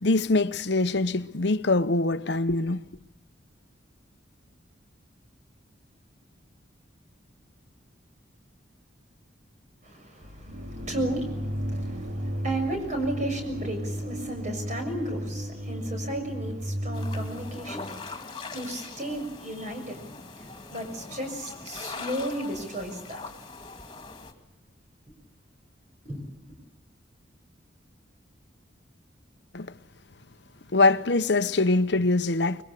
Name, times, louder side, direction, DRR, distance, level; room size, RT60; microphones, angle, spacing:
voice 1, 0.0-2.8 29.5-29.7 30.7-32.6, left 2 dB, 60° left, 0.9 m, -23 dB
voice 2, 9.8-23.2 26.0-26.2, right 1 dB, 40° right, 6.5 m, -34 dB
sound 1, 10.2-18.1, equal, 85° right, 3.2 m, -34 dB
sound 2, 16.9-24.3, left 3 dB, 25° left, 2.5 m, -41 dB
25.0 x 22.5 x 8.4 m
head